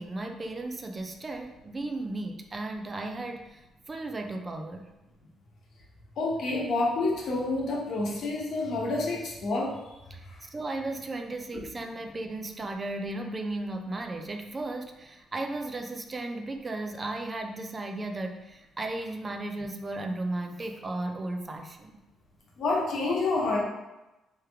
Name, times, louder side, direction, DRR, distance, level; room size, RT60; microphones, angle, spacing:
voice 1, 0.0-4.9 10.1-22.0, right 2 dB, 30° right, 4 dB, 0.4 m, -35 dB
voice 2, 6.2-9.8 11.5-11.6 22.6-23.6, left 2 dB, 65° left, -2 dB, 1.0 m, -28 dB
3.4 x 3.2 x 3.3 m, 1.0 s
cardioid pair, 90°, 0 cm